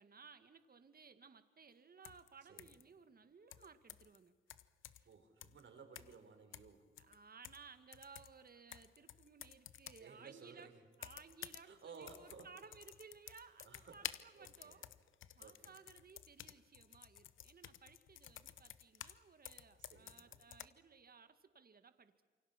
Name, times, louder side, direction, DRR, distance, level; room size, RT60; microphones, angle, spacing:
voice 1, 0.0-4.4 5.0-5.1 7.0-14.8 15.3-22.2, right 5 dB, 50° right, 10 dB, 2.0 m, -60 dB
sound 1, 2.0-2.3 2.6-2.8 3.5-4.2 4.5-5.1 5.4-5.6 5.9-6.2 6.5-7.7 7.9-10.1 10.9-11.7 11.9-19.2 19.4-20.7, left 11 dB, 85° left, 0.9 m, -52 dB
voice 2, 2.4-2.8 5.0-6.9 10.0-10.8 11.6-12.5 13.3-14.8 15.4-15.8 19.8-20.4, right 5 dB, 75° right, 5 dB, 4.7 m, -58 dB
27.5 x 24.5 x 6.0 m, 1.5 s
cardioid pair, 60°, 20 cm